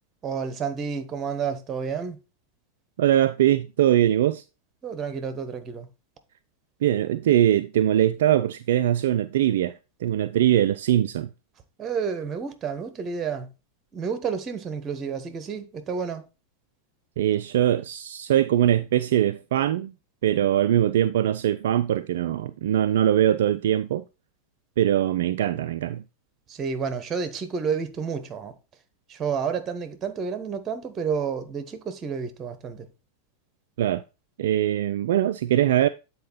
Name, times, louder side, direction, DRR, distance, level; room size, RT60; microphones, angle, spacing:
voice 1, 0.2-2.2 4.8-5.9 11.8-13.5 13.9-16.3 26.5-28.5 29.1-32.9, right 6 dB, 25° right, 1.1 m, -30 dB
voice 2, 3.0-4.4 6.8-11.3 17.2-19.9 20.2-24.0 24.8-26.0 33.8-34.0 34.4-35.9, right 11 dB, 55° right, 0.3 m, -22 dB
8.3 x 4.2 x 4.2 m
figure-of-eight pair, 90°, 0 cm